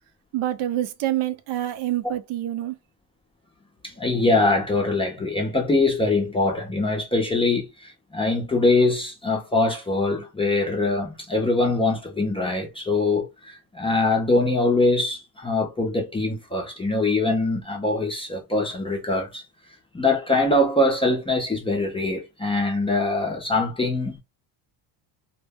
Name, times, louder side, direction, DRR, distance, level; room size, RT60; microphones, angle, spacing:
voice 1, 0.3-2.8, right 13 dB, 70° right, 0.6 m, -26 dB
voice 2, 3.8-19.4 19.9-24.2, left 2 dB, 10° left, 0.4 m, -23 dB
2.1 x 2.0 x 3.3 m
cardioid pair, 115°, 50 cm